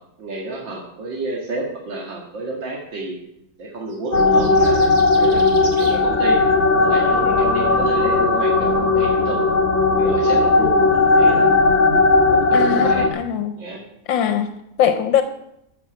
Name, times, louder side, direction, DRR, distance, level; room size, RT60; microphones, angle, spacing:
voice 1, 0.2-3.1 3.6-6.4 6.8-9.4 10.0-11.5 12.3-13.1 13.6-13.8, right 2 dB, 80° right, -1 dB, 2.7 m, -30 dB
sound 1, 3.9-6.0, right 2 dB, 65° right, 2.7 m, -37 dB
sound 2, 4.1-13.1, left 3 dB, 40° left, 1.6 m, -16 dB
voice 2, 12.5-13.6 14.1-15.2, left 8 dB, 80° left, 9 dB, 1.5 m, -21 dB
13.5 x 7.0 x 7.0 m, 0.80 s
omnidirectional pair, 2.0 m